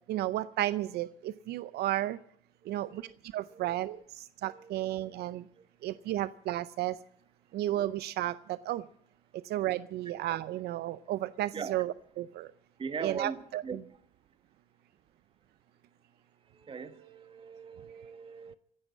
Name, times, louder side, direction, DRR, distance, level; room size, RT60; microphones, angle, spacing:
voice 1, 0.1-2.2 2.7-3.0 3.3-5.4 5.8-7.0 7.5-8.8 9.4-12.5 13.0-13.6, right 14 dB, 75° right, 0.6 m, -33 dB
voice 2, 2.6-3.2 3.5-4.0 4.4-5.1 5.6-6.0 11.5-11.8 12.8-14.0 16.5-18.5, right 5 dB, 30° right, 1.5 m, -42 dB
15.5 x 9.9 x 8.6 m
cardioid pair, 110°, 17 cm